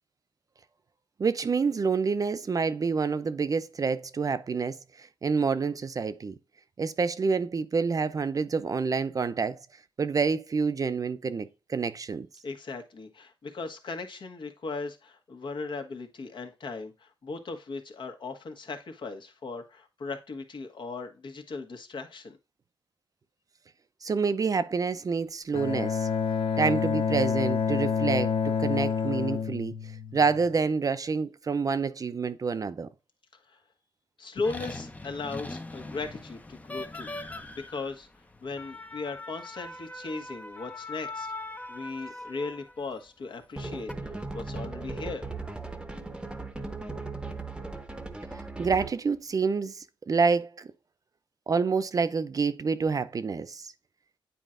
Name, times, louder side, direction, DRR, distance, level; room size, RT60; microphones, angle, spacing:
voice 1, 1.2-6.3 6.8-9.6 10.0-12.3 24.0-26.1 26.6-29.7 30.1-32.9 48.6-50.7 51.5-53.7, right 5 dB, 40° right, 0.5 m, -28 dB
voice 2, 12.4-22.4 33.5-33.6 34.2-37.1 37.5-38.1 38.4-41.3 41.7-43.9 44.3-45.3, left 3 dB, 60° left, 1.3 m, -37 dB
Bowed string instrument, 25.5-30.6, left 6 dB, 75° left, 0.7 m, -28 dB
sound 1, 34.4-42.9 43.6-43.9, left 2 dB, 15° left, 0.7 m, -41 dB
sound 2, 43.6-49.1, right 3 dB, 10° right, 0.9 m, -37 dB
9.1 x 4.4 x 2.5 m
cardioid pair, 90°, 9 cm